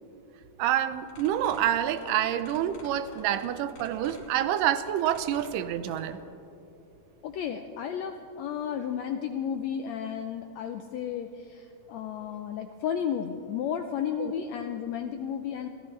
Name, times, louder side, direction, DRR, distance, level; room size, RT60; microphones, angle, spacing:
voice 1, 0.6-6.2 14.2-14.3, right 11 dB, 85° right, 12 dB, 2.3 m, -27 dB
sound 1, 1.0-6.1, left 2 dB, 65° left, 4.3 m, -48 dB
voice 2, 7.2-15.7, left 8 dB, 80° left, 6 dB, 1.6 m, -33 dB
28.0 x 14.5 x 3.2 m, 2.7 s
omnidirectional pair, 3.8 m